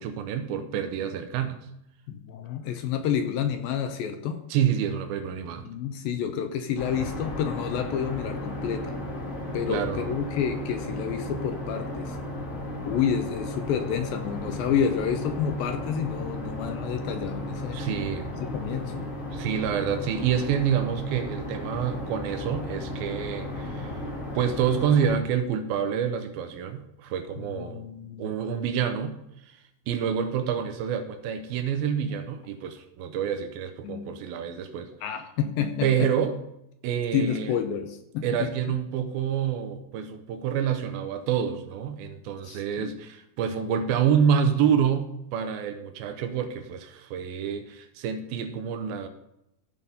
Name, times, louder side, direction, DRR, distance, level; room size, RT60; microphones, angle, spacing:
voice 1, 0.0-1.6 4.5-5.7 9.7-10.1 17.7-18.3 19.3-24.0 24.4-27.8 28.2-29.2 29.9-34.9 35.8-36.3 36.8-37.5 38.2-49.1, right 8 dB, 75° right, 8 dB, 2.4 m, -27 dB
voice 2, 2.1-4.4 5.6-9.0 9.5-12.2 12.9-17.8 18.4-19.1 27.4-28.3 33.8-34.1 35.0-36.1 37.1-38.5 42.4-42.9, left 8 dB, 80° left, 7 dB, 2.2 m, -29 dB
sound 1, 6.8-25.2, left 1 dB, 40° left, 1.1 m, -35 dB
15.0 x 5.2 x 4.2 m, 0.83 s
omnidirectional pair, 4.6 m